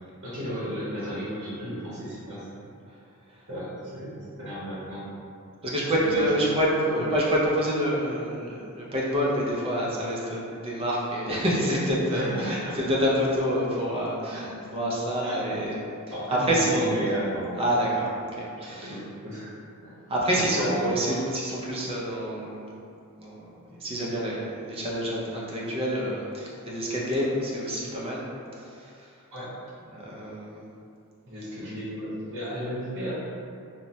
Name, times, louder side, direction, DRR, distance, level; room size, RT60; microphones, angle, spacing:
voice 1, 0.2-2.6 3.5-5.0 6.0-6.6 6.9-7.1 12.1-12.8 14.3-14.7 15.2-15.5 16.1-17.7 18.8-19.5 19.8-19.9 20.3-21.0 29.3-29.5 31.3-33.1, equal, 50° right, -10 dB, 0.8 m, -34 dB
voice 2, 5.6-15.8 16.3-17.0 17.6-19.0 20.1-22.7 23.2-23.4 23.7-28.2 28.7-28.9 30.0-30.6, equal, 25° right, -4 dB, 0.5 m, -27 dB
3.1 x 2.1 x 2.7 m, 2.5 s
head